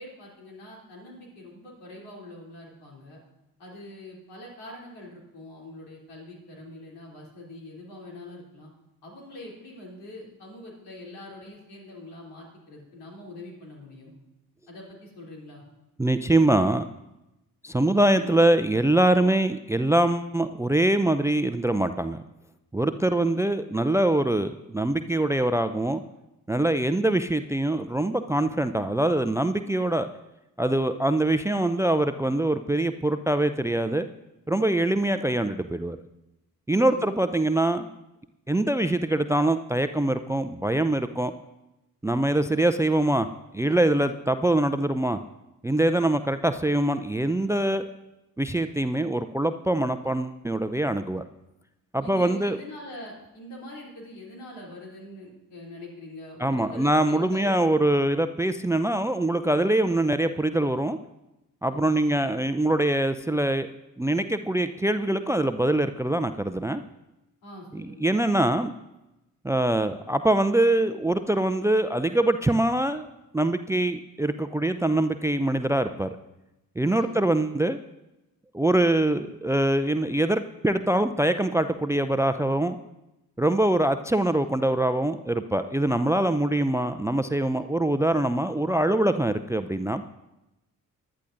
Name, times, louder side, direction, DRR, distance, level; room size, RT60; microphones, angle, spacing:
voice 1, 0.0-3.2 3.6-8.7 9.0-14.1 14.7-15.6 23.0-23.3 36.8-37.1 52.0-57.6 61.7-62.2 67.4-68.1 76.9-77.2, left 1 dB, 75° left, -3 dB, 3.2 m, -44 dB
voice 2, 16.0-16.9 17.6-22.2 22.7-26.0 26.5-30.1 30.6-34.1 34.5-36.0 36.7-37.9 38.5-41.3 42.0-43.3 43.5-45.2 45.6-47.8 48.4-51.2 51.9-52.6 56.4-61.0 61.6-63.7 64.0-66.8 67.7-68.7 69.4-73.1 73.3-76.2 76.8-77.8 78.5-82.8 83.4-90.0, right 1 dB, 5° right, 11 dB, 0.5 m, -23 dB
19.5 x 11.0 x 2.6 m, 0.94 s
figure-of-eight pair, 40°, 43 cm